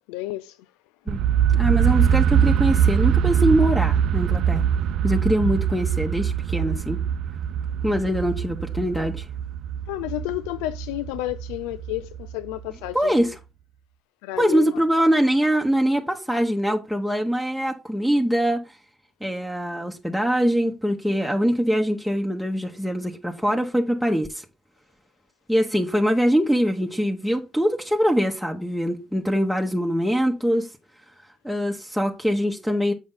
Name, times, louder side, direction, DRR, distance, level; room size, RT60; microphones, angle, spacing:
voice 1, 0.1-0.7 9.9-13.4 14.2-14.8, left 17 dB, 85° left, 0.3 m, -31 dB
sound 1, 1.1-12.9, right 9 dB, 70° right, 0.4 m, -23 dB
voice 2, 1.5-4.7 5.0-7.0 7.8-9.2 12.9-13.3 14.4-18.8 19.2-24.4 25.5-30.7 31.4-32.9, equal, ahead, 1.2 m, -23 dB
7.6 x 5.4 x 3.8 m
supercardioid pair, 65°, 0 cm